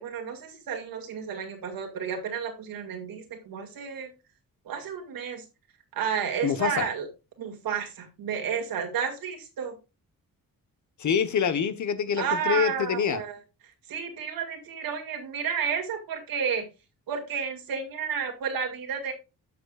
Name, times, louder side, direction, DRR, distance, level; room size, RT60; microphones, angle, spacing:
voice 1, 0.0-4.1 4.7-5.4 5.9-7.1 7.4-9.7 12.2-13.4 13.9-16.6 17.1-19.1, right 7 dB, 85° right, 2.2 m, -31 dB
voice 2, 6.4-6.9 11.0-13.2, left 7 dB, 55° left, 1.2 m, -26 dB
12.0 x 6.9 x 2.4 m
cardioid pair, 80°, 34 cm